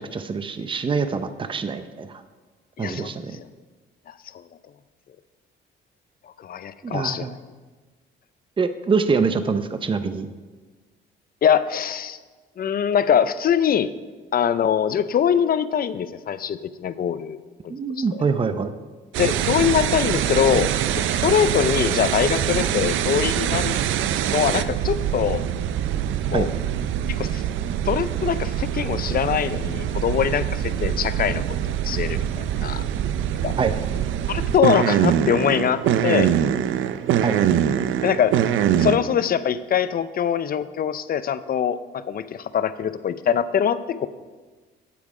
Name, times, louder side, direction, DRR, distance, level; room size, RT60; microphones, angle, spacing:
voice 1, 0.0-2.2 2.8-3.4 6.8-7.3 8.6-10.3 17.7-18.7 26.3-26.5 33.6-33.7 37.2-37.4, right 5 dB, 25° right, 10 dB, 0.6 m, -24 dB
voice 2, 2.8-3.1 4.1-4.2 6.4-7.4 11.4-12.2 12.6-13.9 14.3-17.4 17.6-18.2 19.2-23.7 24.3-25.5 26.3-26.5 27.1-27.4 27.8-31.4 31.8-32.8 33.4-33.5 34.3-36.3 38.0-38.4 38.7-44.1, left 8 dB, 50° left, 14 dB, 0.5 m, -23 dB
sound 1, 19.1-39.0, right 10 dB, 80° right, 0.5 m, -24 dB
8.6 x 8.4 x 4.9 m, 1.3 s
cardioid pair, 90°, 20 cm